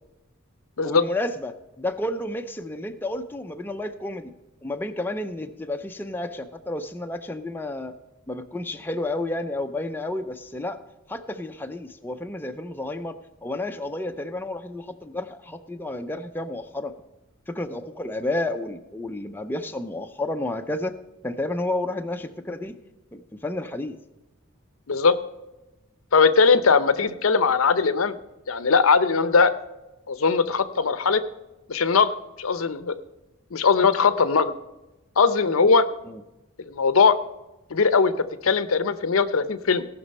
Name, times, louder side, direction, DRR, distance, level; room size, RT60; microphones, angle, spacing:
voice 1, 0.8-4.3 4.6-8.0 8.3-10.8 11.1-16.9 17.5-21.0 21.2-22.7 23.1-24.0 36.0-36.2, left 2 dB, 10° left, 5 dB, 0.5 m, -31 dB
voice 2, 26.1-28.2 28.5-29.5 30.1-31.2 31.7-32.1 32.4-33.0 33.5-34.5 35.2-35.9 36.7-37.2 37.7-39.9, left 5 dB, 75° left, 13 dB, 0.7 m, -20 dB
17.5 x 6.0 x 5.4 m, 0.99 s
head